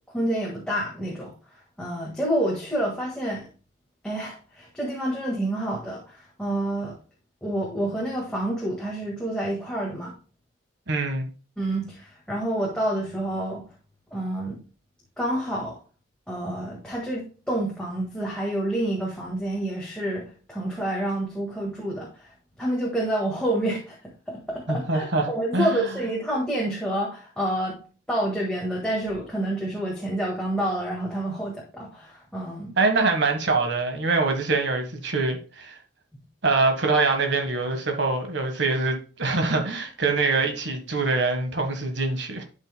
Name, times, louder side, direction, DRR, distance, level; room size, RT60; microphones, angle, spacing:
voice 1, 0.1-1.3 1.8-3.5 4.0-7.0 7.4-10.1 11.6-13.6 14.1-14.6 15.2-15.8 16.3-22.3 22.6-24.0 24.3-27.8 28.1-32.7, right 1 dB, 5° left, 1.7 m, -28 dB
voice 2, 10.9-11.3 24.7-25.3 25.5-25.9 32.8-35.8 36.4-42.4, right 3 dB, 65° right, 1.5 m, -24 dB
12.0 x 5.5 x 2.2 m
head